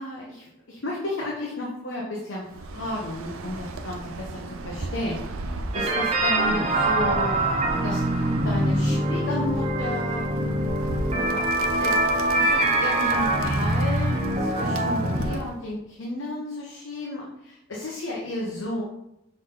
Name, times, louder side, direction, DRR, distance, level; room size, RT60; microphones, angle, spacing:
voice 1, 0.0-7.4 7.8-8.0 8.4-10.2 11.1-11.4 11.8-12.0 12.3-18.8, left 1 dB, 65° left, -3 dB, 1.1 m, -33 dB
Bird, 2.5-15.6, right 2 dB, 90° right, 0.6 m, -36 dB
sound 1, 5.7-15.4, right 1 dB, 30° right, 0.8 m, -24 dB
6.2 x 4.0 x 3.8 m, 0.83 s
head